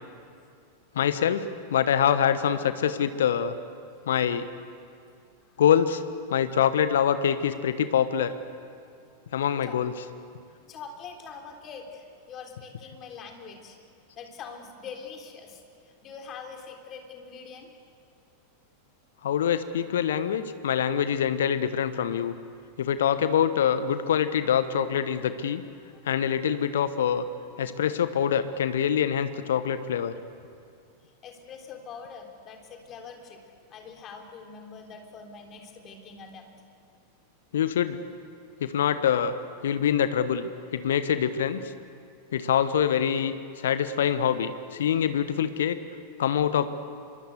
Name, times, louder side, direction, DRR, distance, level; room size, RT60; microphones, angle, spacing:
voice 1, 0.9-3.5 4.1-4.5 5.6-6.0 6.3-8.3 9.3-9.9 19.2-22.3 22.8-25.6 26.1-27.2 27.6-30.1 37.5-38.0 38.6-39.3 39.6-41.6 42.3-45.8 46.2-46.7, left 8 dB, 60° left, 12 dB, 1.1 m, -25 dB
voice 2, 10.7-13.8 14.2-17.7 25.9-26.0 31.0-33.4 33.7-36.6, left 5 dB, 30° left, 3 dB, 3.8 m, -44 dB
25.5 x 23.0 x 8.1 m, 2.4 s
figure-of-eight pair, 90°, 0 cm